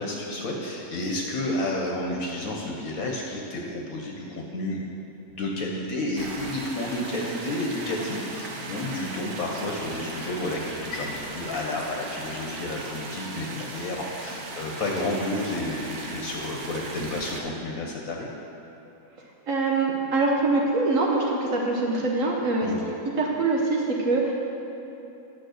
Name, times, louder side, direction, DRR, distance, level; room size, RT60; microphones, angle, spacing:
voice 1, 0.0-4.8 5.4-18.3 22.6-22.8, left 1 dB, 65° left, -1 dB, 1.3 m, -31 dB
sound 1, 6.2-17.4, right 3 dB, 80° right, 1.4 m, -37 dB
voice 2, 19.5-22.7 23.2-24.3, right 3 dB, 60° right, -1 dB, 1.2 m, -24 dB
9.1 x 6.0 x 6.4 m, 2.9 s
omnidirectional pair, 1.6 m